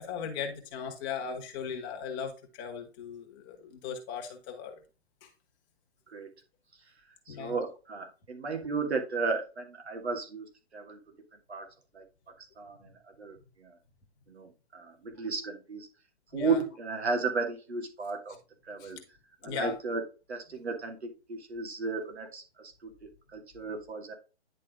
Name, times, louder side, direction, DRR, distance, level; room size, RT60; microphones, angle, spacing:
voice 1, 0.0-4.8 5.2-5.3 7.3-7.6 16.3-16.6 18.8-18.9 19.4-19.7, left 6 dB, 20° left, 3 dB, 1.4 m, -38 dB
voice 2, 7.3-11.0 11.5-12.0 12.4-12.9 13.2-13.8 14.3-15.9 16.3-18.4 18.6-19.0 19.4-20.0 20.3-24.1, right 4 dB, 75° right, 3 dB, 2.3 m, -34 dB
10.5 x 3.6 x 3.6 m, 0.32 s
hypercardioid pair, 155°, 33 cm